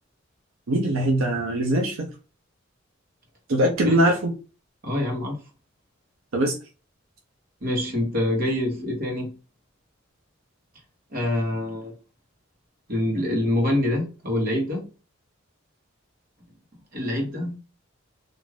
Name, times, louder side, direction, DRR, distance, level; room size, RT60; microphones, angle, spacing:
voice 1, 0.7-2.1 3.5-4.3 6.3-6.6, right 1 dB, 85° right, 1 dB, 0.6 m, -22 dB
voice 2, 4.8-5.4 7.6-9.3 11.1-11.9 12.9-14.8 16.9-17.6, left 1 dB, 50° right, 0 dB, 1.2 m, -25 dB
2.5 x 2.4 x 3.2 m, 0.33 s
head